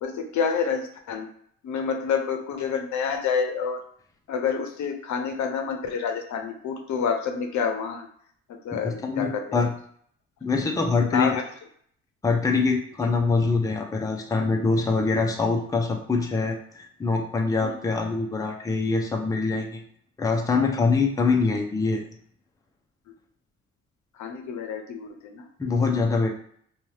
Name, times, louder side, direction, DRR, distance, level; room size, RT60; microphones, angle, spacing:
voice 1, 0.0-1.3 1.6-3.8 4.3-8.1 8.5-9.7 11.0-11.4 13.0-13.1 17.6-17.7 24.2-25.5, left 6 dB, 70° left, 5 dB, 0.6 m, -28 dB
voice 2, 8.8-9.7 10.4-11.4 12.2-16.6 17.0-19.8 20.2-22.0 25.6-26.3, left 4 dB, 10° left, 1 dB, 0.5 m, -24 dB
2.7 x 2.3 x 3.2 m, 0.63 s
cardioid pair, 90°, 30 cm